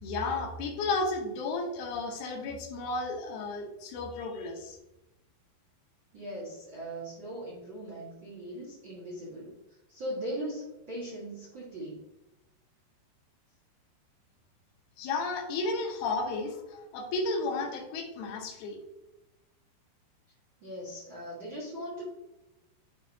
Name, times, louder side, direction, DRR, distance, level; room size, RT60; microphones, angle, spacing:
voice 1, 0.0-4.8 15.0-18.8, left 3 dB, 80° left, 0 dB, 1.8 m, -33 dB
voice 2, 6.1-9.5 9.9-12.1 20.6-22.0, right 1 dB, 55° right, -7 dB, 1.3 m, -39 dB
11.0 x 3.7 x 2.8 m, 0.91 s
omnidirectional pair, 4.9 m